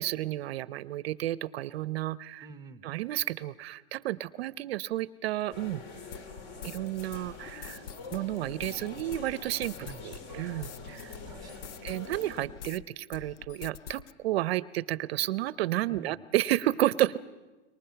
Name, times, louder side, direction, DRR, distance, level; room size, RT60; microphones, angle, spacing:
voice 1, 0.0-2.5 2.8-5.8 6.6-7.8 8.1-9.8 10.0-11.2 11.8-17.2, right 15 dB, 60° right, 18 dB, 0.7 m, -31 dB
voice 2, 2.4-2.9 9.8-10.3 11.2-11.8 15.8-16.2, right 4 dB, 10° right, 11 dB, 0.8 m, -48 dB
sound 1, 5.5-12.5, left 3 dB, 45° left, 3.9 m, -45 dB
sound 2, 6.1-12.8 13.1-14.1, left 8 dB, 85° left, 0.8 m, -46 dB
27.0 x 23.5 x 5.7 m, 1.2 s
hypercardioid pair, 135°, 34 cm